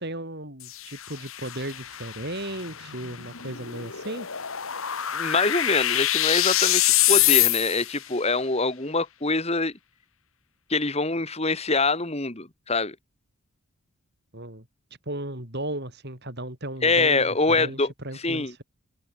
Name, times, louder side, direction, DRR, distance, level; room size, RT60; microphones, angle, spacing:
voice 1, 0.0-4.3 14.3-14.6 15.1-17.8 18.0-18.6, right 1 dB, 45° right, 6.5 m, -35 dB
sound 1, 0.6-8.0, left 14 dB, 65° left, 1.7 m, -25 dB
voice 2, 5.1-9.7 10.7-13.0 16.8-17.9 18.2-18.5, left 3 dB, 30° left, 2.3 m, -24 dB
head